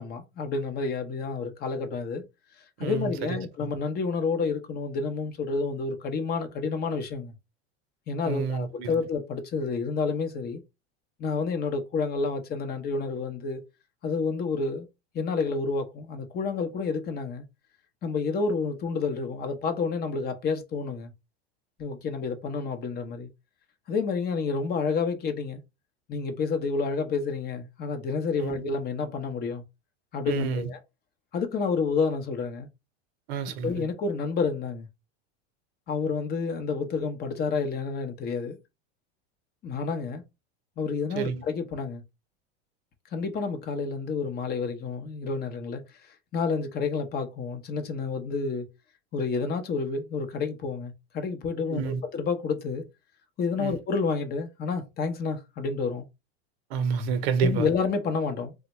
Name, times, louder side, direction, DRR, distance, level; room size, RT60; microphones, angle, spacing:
voice 1, 0.0-2.2 2.8-7.3 8.1-10.6 11.2-13.6 14.0-14.9 15.1-17.4 18.0-21.1 21.8-23.3 23.9-25.6 26.1-29.6 30.1-30.8 31.3-32.7 33.6-34.9 35.9-38.6 39.6-40.2 40.8-42.0 43.1-45.8 46.3-48.7 49.1-52.8 53.4-56.0 57.4-58.5, left 4 dB, 30° left, 0.6 m, -29 dB
voice 2, 2.8-3.7 8.2-9.0 28.4-28.7 30.3-30.7 33.3-33.8 41.1-41.4 51.7-52.0 53.6-53.8 56.7-57.7, right 6 dB, 70° right, 0.7 m, -29 dB
3.3 x 2.1 x 2.9 m
supercardioid pair, 125°, 32 cm